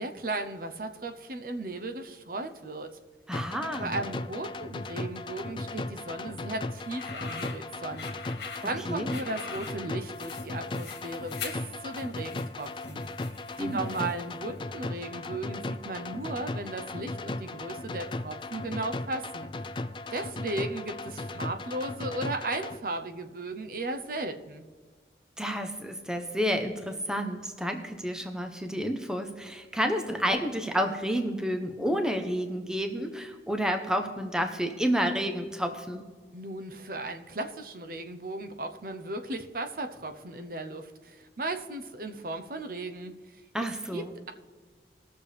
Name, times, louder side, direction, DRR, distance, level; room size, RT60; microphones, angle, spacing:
voice 1, 0.0-3.0 3.8-8.0 8.6-13.0 13.6-19.5 20.1-24.7 36.3-43.1 43.9-44.3, right 2 dB, 50° right, 7 dB, 0.8 m, -36 dB
sound 1, 3.3-22.8, left 2 dB, 25° left, 0.4 m, -37 dB
voice 2, 3.3-3.9 8.9-9.1 13.6-14.1 25.4-36.0 43.5-44.1, equal, 5° right, 6 dB, 0.8 m, -30 dB
sound 2, 6.8-14.3, left 6 dB, 65° left, 1.8 m, -43 dB
20.0 x 6.8 x 3.4 m, 1.5 s
head